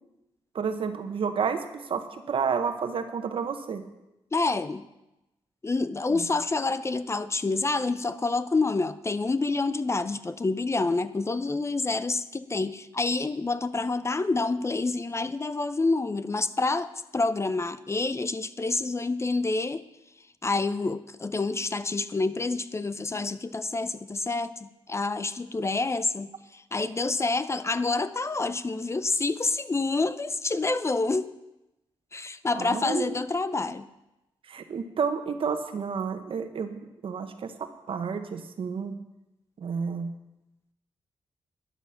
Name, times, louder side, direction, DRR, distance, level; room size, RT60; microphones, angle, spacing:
voice 1, 0.5-3.8 6.1-6.3 32.5-33.2 34.5-36.8 37.0-38.9 39.6-40.1, right 6 dB, 65° right, 8 dB, 1.2 m, -30 dB
voice 2, 4.3-4.8 5.6-19.8 20.4-31.3 32.1-33.9, left 3 dB, 30° left, 14 dB, 0.6 m, -28 dB
12.5 x 9.9 x 5.8 m, 0.95 s
cardioid pair, 60°, 10 cm